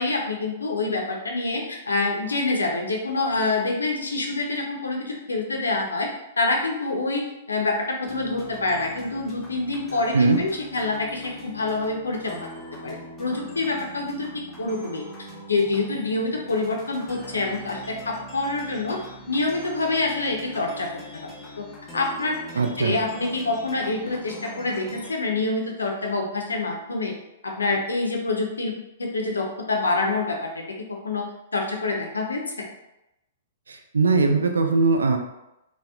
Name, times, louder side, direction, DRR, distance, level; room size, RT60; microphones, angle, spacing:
voice 1, 0.0-6.1 6.4-12.4 12.8-14.3 14.6-15.0 15.5-19.0 19.3-20.9 21.1-21.3 21.6-21.7 21.9-22.4 22.8-27.1 27.4-28.7 29.0-30.6 31.0-31.2 31.5-32.5, left 3 dB, 85° left, 1 dB, 0.5 m, -26 dB
sound 1, 8.1-25.1, equal, 15° left, 0.7 m, -42 dB
voice 2, 22.5-23.0 33.7-35.2, right 3 dB, 80° right, 5 dB, 0.3 m, -20 dB
2.7 x 2.0 x 2.2 m, 0.90 s
hypercardioid pair, 115°, 0 cm